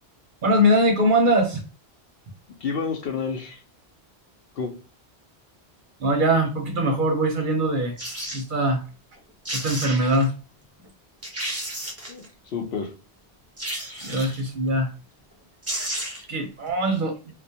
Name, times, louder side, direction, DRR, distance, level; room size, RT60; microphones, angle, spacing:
voice 1, 0.4-1.6 6.0-8.0 8.3-8.8 9.5-10.3 14.0-14.9 16.3-17.2, right 1 dB, 60° right, 3 dB, 0.7 m, -22 dB
voice 2, 2.6-3.6 4.6-4.7 12.1-12.9, left 5 dB, 65° left, 3 dB, 0.8 m, -29 dB
sound 1, 8.0-8.4 9.2-9.3 9.4-10.3 10.8-10.9 11.2-12.3 13.6-14.5 15.3-15.4 15.6-16.4 16.7-16.8, right 1 dB, 25° right, 0.4 m, -32 dB
2.2 x 2.1 x 2.7 m, 0.33 s
omnidirectional pair, 1.1 m